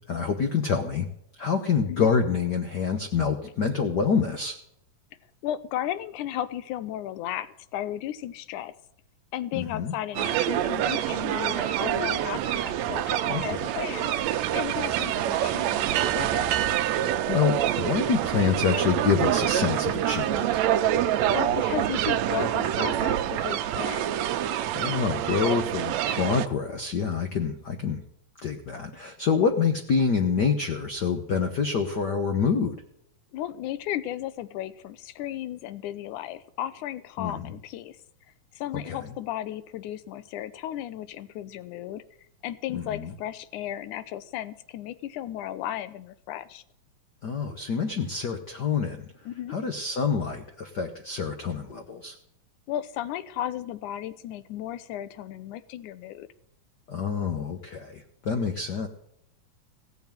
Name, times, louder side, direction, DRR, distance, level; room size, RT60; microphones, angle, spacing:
voice 1, 0.1-1.1 1.4-4.6 9.5-9.9 13.3-13.7 17.3-20.6 24.7-28.0 28.4-32.8 37.2-37.5 38.7-39.0 42.7-43.1 47.2-49.0 49.5-52.1 56.9-58.9, left 6 dB, 60° left, 5 dB, 1.1 m, -27 dB
voice 2, 5.4-8.7 9.3-14.1 14.5-16.5 21.3-24.1 33.3-38.0 38.5-42.0 42.4-46.6 49.3-49.6 52.7-56.3, left 12 dB, 90° left, 14 dB, 2.3 m, -34 dB
sound 1, 10.1-26.5, right 11 dB, 75° right, 1.9 m, -26 dB
17.0 x 7.2 x 9.0 m, 0.73 s
omnidirectional pair, 3.4 m